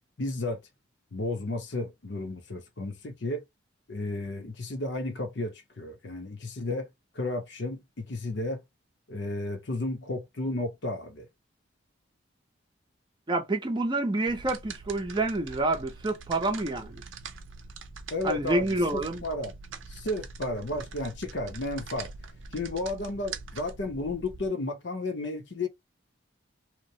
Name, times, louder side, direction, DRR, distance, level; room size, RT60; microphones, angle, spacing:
voice 1, 0.2-0.6 1.1-3.4 3.9-6.9 7.1-8.6 9.1-11.3 18.1-19.5 19.9-22.1 22.5-25.7, left 2 dB, 65° left, 0.8 m, -33 dB
voice 2, 13.3-17.0 18.2-19.2, right 2 dB, 25° right, 0.6 m, -28 dB
sound 1, 14.3-24.5, right 4 dB, 85° right, 0.6 m, -43 dB
2.9 x 2.1 x 2.7 m
head